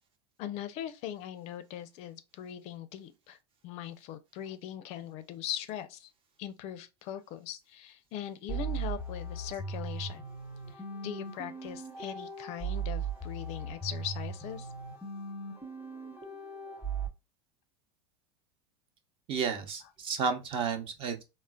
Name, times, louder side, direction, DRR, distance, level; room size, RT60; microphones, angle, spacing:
voice 1, 0.4-3.4 3.6-6.1 6.4-10.2 10.7-14.7, left 10 dB, 50° left, 0.4 m, -40 dB
sound 1, 8.5-17.1, right 4 dB, 10° right, 0.9 m, -38 dB
voice 2, 19.3-21.2, right 6 dB, 40° right, 0.7 m, -32 dB
3.7 x 2.0 x 2.2 m
hypercardioid pair, 105°, 14 cm